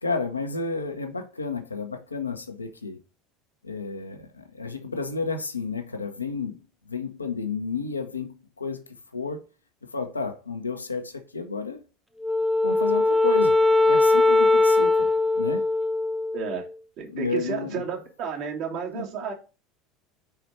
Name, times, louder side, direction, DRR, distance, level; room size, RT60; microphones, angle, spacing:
voice 1, 0.0-3.0 3.6-6.6 6.9-8.8 9.1-9.4 9.9-11.8 12.6-15.1 15.3-15.7 17.1-17.8 18.9-19.1, left 4 dB, 85° left, 0.9 m, -31 dB
Wind instrument woodwind instrument, 12.2-16.7, left 2 dB, ahead, 0.6 m, -20 dB
voice 2, 16.3-16.6 17.0-19.3, right 6 dB, 50° right, 2.3 m, -32 dB
5.0 x 4.6 x 5.7 m
figure-of-eight pair, 70°, 0 cm